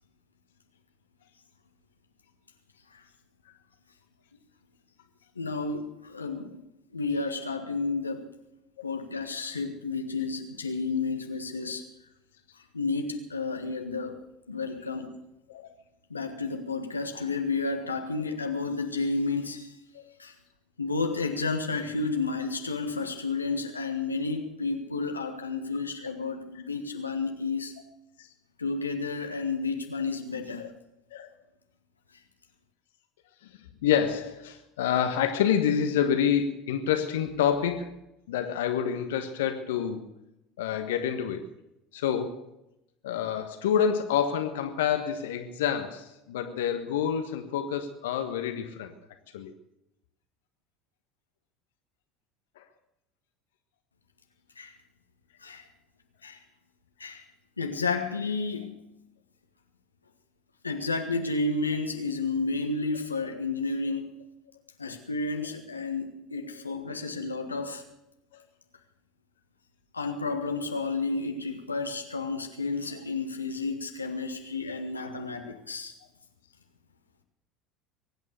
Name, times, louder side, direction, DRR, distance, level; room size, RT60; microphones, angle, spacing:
voice 1, 5.4-6.5 6.9-8.3 8.8-11.8 12.7-14.2 14.5-15.1 16.1-19.7 20.2-20.3 20.8-27.7 28.6-30.6 54.6-54.7 55.4-55.6 56.2-56.4 57.0-57.2 57.6-58.7 60.6-64.1 64.8-67.8 69.9-75.9, left 3 dB, 90° left, 1.5 m, -31 dB
voice 2, 33.8-38.0 38.3-40.0 40.6-41.4 41.9-42.4 43.0-48.9 49.3-49.5 52.6-52.7 68.3-68.4, left 8 dB, 70° left, 1.4 m, -28 dB
23.0 x 9.0 x 6.6 m
figure-of-eight pair, 70°, 0 cm